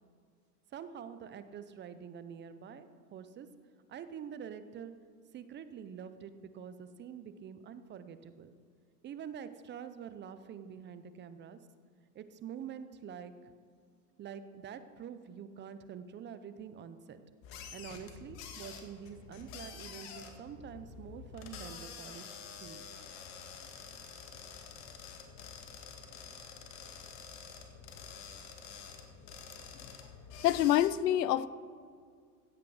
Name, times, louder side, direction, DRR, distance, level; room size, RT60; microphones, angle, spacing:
voice 1, 0.7-3.5 3.9-4.9 5.3-8.5 9.0-11.6 12.1-13.5 14.2-17.2 17.7-22.3 22.6-22.9, right 8 dB, 25° right, 12 dB, 0.6 m, -46 dB
sound 1, 17.4-30.9, left 6 dB, 55° left, 2.1 m, -48 dB
voice 2, 30.4-31.5, left 12 dB, 85° left, 18 dB, 0.6 m, -27 dB
16.0 x 8.3 x 4.9 m, 2.1 s
hypercardioid pair, 110°, 47 cm